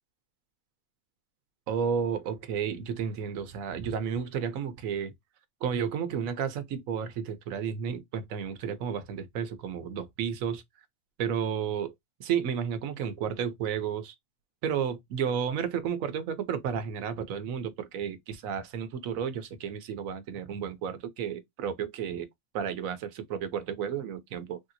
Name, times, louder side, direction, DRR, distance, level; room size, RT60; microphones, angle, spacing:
voice 1, 1.7-5.1 5.6-10.6 11.2-11.9 12.2-14.1 14.6-22.3 22.5-24.6, right 7 dB, 80° right, 1.1 m, -32 dB
3.3 x 2.8 x 2.5 m
omnidirectional pair, 1.4 m